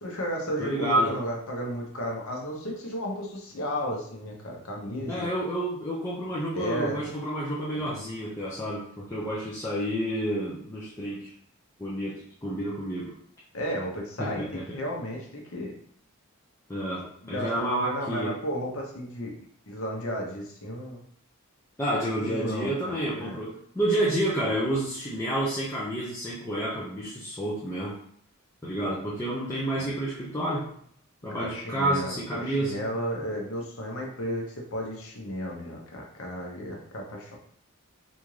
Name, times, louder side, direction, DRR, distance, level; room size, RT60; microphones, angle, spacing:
voice 1, 0.0-5.3 6.5-7.0 7.7-7.8 13.5-15.7 17.2-19.3 19.7-21.0 22.2-23.4 29.7-29.9 31.3-37.3, equal, 65° left, 0 dB, 0.9 m, -33 dB
voice 2, 0.6-1.1 5.1-11.3 11.8-13.1 14.2-14.8 16.7-18.3 21.8-28.0 28.6-30.6 31.2-32.8, right 1 dB, 10° left, -7 dB, 0.5 m, -29 dB
3.6 x 2.6 x 3.1 m, 0.64 s
head